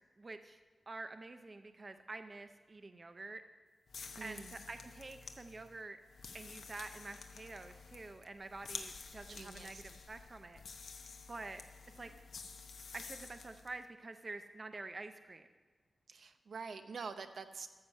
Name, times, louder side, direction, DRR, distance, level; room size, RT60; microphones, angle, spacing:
voice 1, 0.2-0.6 0.9-3.4 4.2-6.0 6.3-10.6 11.3-11.6 12.0-12.1 12.9-15.5, right 3 dB, 30° right, 8 dB, 0.5 m, -48 dB
sound 1, 3.9-13.8, left 5 dB, 85° left, 0.9 m, -51 dB
voice 2, 4.2-4.5 9.3-9.8 16.1-17.7, right 5 dB, 70° right, 8 dB, 0.7 m, -46 dB
13.5 x 7.3 x 5.4 m, 1.5 s
wide cardioid pair, 150°, 0 cm